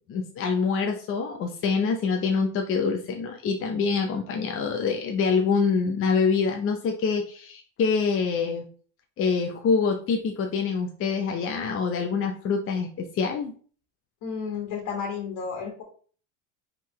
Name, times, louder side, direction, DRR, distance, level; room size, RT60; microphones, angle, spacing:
voice 1, 0.1-8.6 9.2-13.6, left 5 dB, 35° left, 2 dB, 0.6 m, -25 dB
voice 2, 14.2-15.8, left 6 dB, 65° left, 0 dB, 1.7 m, -32 dB
4.6 x 3.7 x 3.1 m, 0.44 s
supercardioid pair, 120°, 37 cm